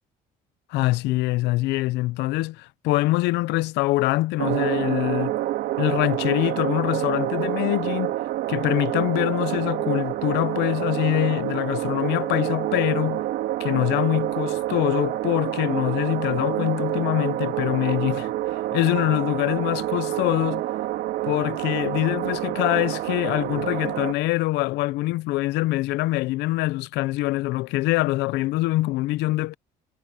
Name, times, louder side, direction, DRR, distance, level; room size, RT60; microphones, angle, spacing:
voice 1, 0.7-5.3 5.8-8.2 8.5-13.2 13.6-18.3 18.7-20.7 21.3-29.5, left 18 dB, 90° left, 0.7 m, -24 dB
sound 1, 4.4-24.1, right 14 dB, 80° right, 2.8 m, -27 dB
cardioid pair, 110°, 17 cm